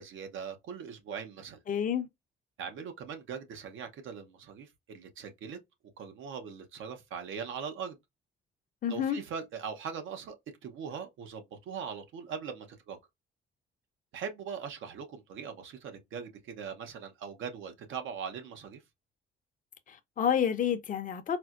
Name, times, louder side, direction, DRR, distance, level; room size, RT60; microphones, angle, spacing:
voice 1, 0.0-1.6 2.6-5.6 6.0-8.0 8.9-10.4 10.6-13.0 14.1-18.8, right 6 dB, 80° right, 0.8 m, -41 dB
voice 2, 1.7-2.1 8.8-9.2 19.9-21.4, left 8 dB, 45° left, 0.5 m, -29 dB
4.3 x 2.1 x 2.4 m
cardioid pair, 90°, 20 cm